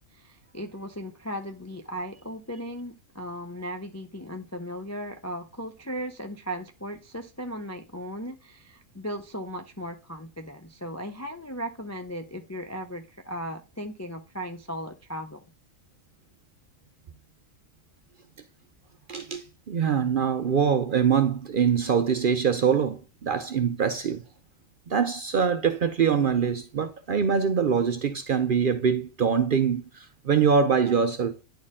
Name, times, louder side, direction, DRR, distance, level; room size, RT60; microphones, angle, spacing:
voice 1, 0.1-15.4, equal, 25° left, 0.3 m, -37 dB
voice 2, 19.1-24.2 24.9-31.3, right 6 dB, 55° right, 0.6 m, -24 dB
10.0 x 4.4 x 3.6 m
omnidirectional pair, 1.4 m